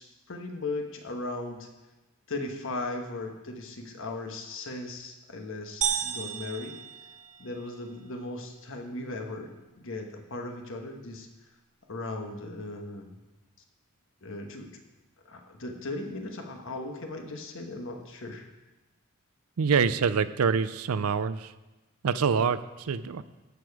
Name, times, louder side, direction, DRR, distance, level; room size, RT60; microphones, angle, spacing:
voice 1, 0.0-1.7 2.3-6.8 7.4-11.3 11.9-13.1 14.2-14.8 15.3-18.4, left 2 dB, 60° left, 3 dB, 1.3 m, -37 dB
sound 1, 5.8-7.8, right 8 dB, 35° right, 0.7 m, -33 dB
voice 2, 19.6-21.5 22.0-23.2, right 6 dB, 80° right, 14 dB, 0.5 m, -26 dB
12.0 x 6.8 x 4.8 m, 1.1 s
head